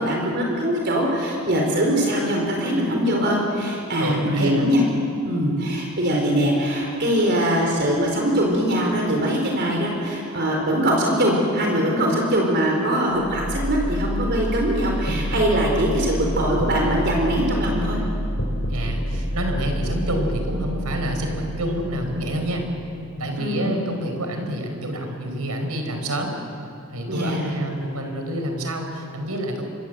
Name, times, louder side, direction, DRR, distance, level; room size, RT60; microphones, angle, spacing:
voice 1, 0.0-4.8 5.2-18.0 23.4-23.7 27.1-27.5, equal, 50° right, 0 dB, 4.1 m, -22 dB
voice 2, 4.0-4.7 18.7-22.6 23.2-26.3 26.9-29.6, right 1 dB, 90° right, 4 dB, 4.8 m, -28 dB
sound 1, 13.2-25.1, equal, 60° left, 4.1 m, -28 dB
25.5 x 23.0 x 7.9 m, 2.9 s
head